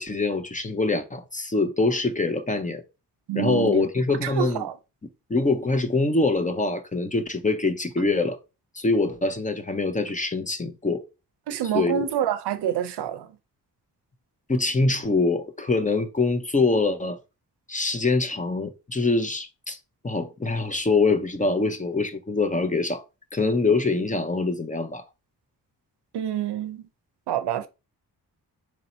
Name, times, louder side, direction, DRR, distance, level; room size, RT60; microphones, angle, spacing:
voice 1, 0.0-2.8 3.3-4.7 5.3-8.4 8.8-11.0 11.7-12.1 14.5-17.2 17.7-19.8 20.0-23.0 23.3-25.0, left 3 dB, 20° left, 0.6 m, -24 dB
voice 2, 3.3-3.8 4.2-4.7 11.5-13.3 26.1-26.8 27.3-27.7, right 10 dB, 85° right, 0.6 m, -27 dB
3.0 x 2.7 x 4.2 m
cardioid pair, 75°, 39 cm